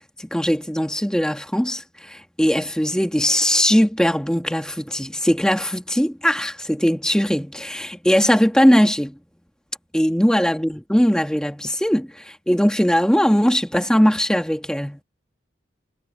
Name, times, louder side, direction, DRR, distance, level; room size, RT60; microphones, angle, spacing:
voice 1, 0.0-9.2 9.9-15.0, equal, 5° left, 1.6 m, -20 dB
head